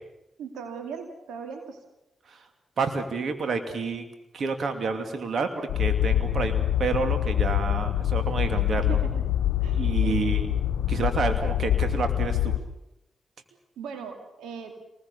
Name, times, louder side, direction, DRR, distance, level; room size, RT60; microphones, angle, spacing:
voice 1, 0.4-1.8 8.9-9.2 9.6-10.3 13.8-14.7, right 6 dB, 85° right, 5 dB, 2.5 m, -39 dB
voice 2, 2.8-4.0 4.3-9.0 9.7-10.5 10.9-12.5, right 4 dB, 65° right, 7 dB, 2.6 m, -29 dB
sound 1, 5.7-12.6, left 11 dB, 85° left, 0.8 m, -25 dB
27.0 x 20.5 x 6.9 m, 0.89 s
supercardioid pair, 40°, 0 cm